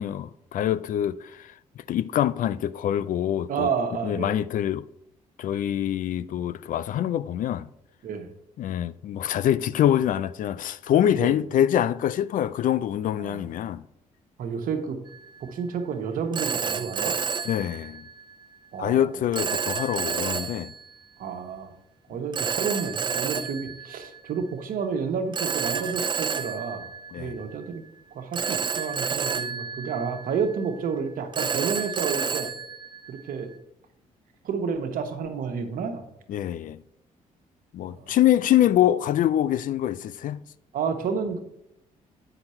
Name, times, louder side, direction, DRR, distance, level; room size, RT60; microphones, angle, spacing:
voice 1, 0.0-1.5 1.9-3.7 4.0-4.8 5.4-7.7 8.6-13.8 17.5-18.0 18.8-20.7 27.1-27.4 36.3-36.8 37.7-40.4, left 11 dB, 65° left, 0.4 m, -25 dB
voice 2, 3.5-4.4 8.0-8.3 11.2-11.4 13.2-13.4 14.4-15.0 15.4-17.1 18.7-19.1 21.2-21.7 22.1-26.9 27.2-27.8 28.1-32.5 33.1-33.5 34.4-36.1 37.9-38.2 40.7-41.4, right 6 dB, 70° right, 1.2 m, -30 dB
Telephone, 15.1-15.4 16.3-18.3 19.3-21.1 22.3-24.5 25.3-27.7 28.3-30.7 31.3-33.5, right 6 dB, 35° right, 0.4 m, -30 dB
8.0 x 5.9 x 4.3 m
cardioid pair, 80°, 15 cm